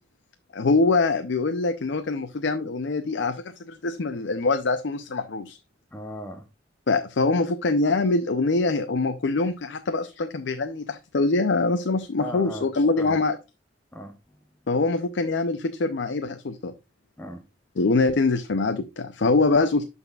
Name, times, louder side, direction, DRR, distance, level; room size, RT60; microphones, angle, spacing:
voice 1, 0.5-5.6 6.9-13.4 14.7-16.7 17.8-19.8, left 3 dB, 65° left, 0.5 m, -24 dB
voice 2, 5.9-6.5 12.2-13.2 13.9-14.4 17.2-17.4, equal, 10° left, 0.8 m, -38 dB
12.0 x 4.1 x 2.3 m
head